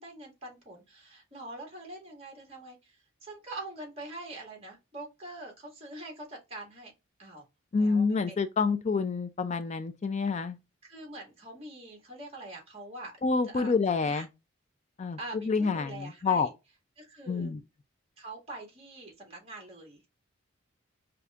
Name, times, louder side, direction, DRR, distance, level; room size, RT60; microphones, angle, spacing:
voice 1, 0.0-6.9 7.2-7.5 7.8-8.4 10.8-13.1 13.4-13.7 14.0-14.3 15.2-16.5 17.0-17.5 18.2-20.1, right 2 dB, 30° right, 1.9 m, -44 dB
voice 2, 7.7-10.6 13.2-14.3 15.0-15.2 15.5-16.5 17.3-17.6, left 4 dB, 35° left, 0.3 m, -28 dB
5.6 x 2.6 x 2.3 m
head